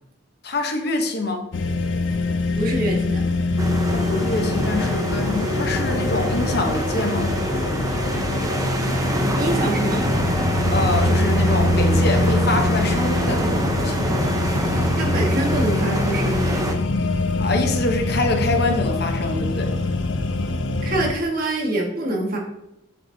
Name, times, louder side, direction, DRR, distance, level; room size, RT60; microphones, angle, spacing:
voice 1, 0.4-1.5 3.9-7.3 10.7-14.0 17.4-19.7, left 2 dB, 50° left, 4 dB, 1.0 m, -25 dB
sound 1, 1.5-21.1, left 2 dB, 65° left, 0.6 m, -23 dB
voice 2, 2.6-3.2 9.4-10.1 15.0-16.8 20.8-22.4, right 1 dB, 45° right, -1 dB, 1.7 m, -25 dB
sound 2, 3.6-16.8, right 1 dB, 15° right, 0.7 m, -26 dB
8.3 x 6.6 x 2.8 m, 0.86 s
head